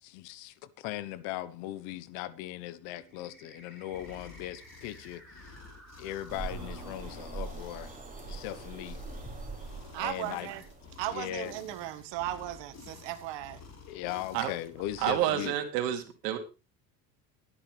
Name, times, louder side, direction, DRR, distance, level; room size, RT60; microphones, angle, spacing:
voice 1, 0.0-5.6 6.0-7.9 8.3-9.0 10.0-10.5 11.1-11.5 13.9-15.6, left 14 dB, 70° left, 1.3 m, -39 dB
sound 1, 2.9-8.9 9.7-9.8 10.3-10.7, right 1 dB, ahead, 7.5 m, -56 dB
sound 2, 3.9-15.5, left 4 dB, 30° left, 4.3 m, -52 dB
sound 3, 6.3-11.3, right 3 dB, 15° right, 6.3 m, -42 dB
voice 2, 9.9-10.6 11.0-13.6, right 13 dB, 60° right, 2.0 m, -36 dB
voice 3, 15.0-16.4, right 12 dB, 80° right, 2.8 m, -29 dB
15.5 x 11.5 x 3.4 m
hypercardioid pair, 80°, 49 cm